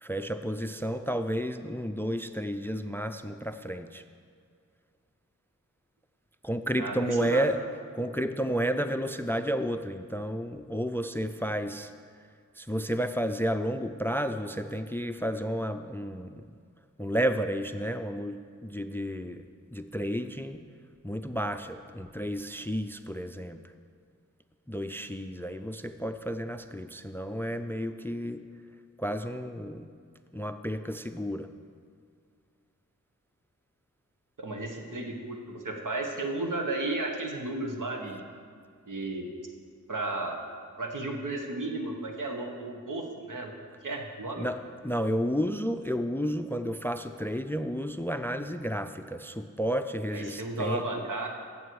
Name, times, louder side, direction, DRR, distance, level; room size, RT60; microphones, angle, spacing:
voice 1, 0.0-4.0 6.4-7.6 7.9-11.9 12.6-16.5 17.0-19.4 19.7-20.6 21.0-23.6 24.7-28.4 29.0-29.9 30.3-31.5 44.4-44.6 44.8-50.8, equal, 5° left, 10 dB, 0.4 m, -31 dB
voice 2, 6.8-7.5 34.4-38.3 38.9-39.3 39.9-40.4 40.8-43.5 43.8-44.5 50.1-51.3, right 2 dB, 75° right, 2 dB, 1.5 m, -33 dB
14.5 x 7.7 x 4.7 m, 2.1 s
wide cardioid pair, 75°, 32 cm